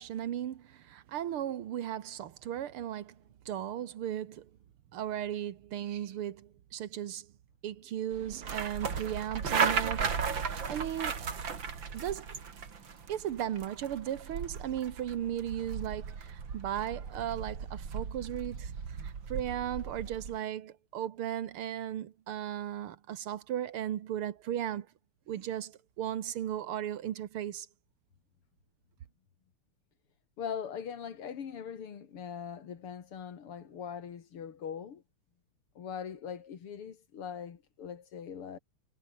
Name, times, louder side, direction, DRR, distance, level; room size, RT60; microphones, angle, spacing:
voice 1, 0.0-4.5 4.9-7.3 7.6-11.3 11.9-12.4 13.1-24.9 25.3-27.7, right 11 dB, 80° right, 2.1 m, -36 dB
sound 1, 8.1-20.4, right 6 dB, 60° right, 3.1 m, -36 dB
voice 2, 30.4-35.0 35.8-38.6, left 7 dB, 80° left, 3.0 m, -41 dB
omnidirectional pair, 2.4 m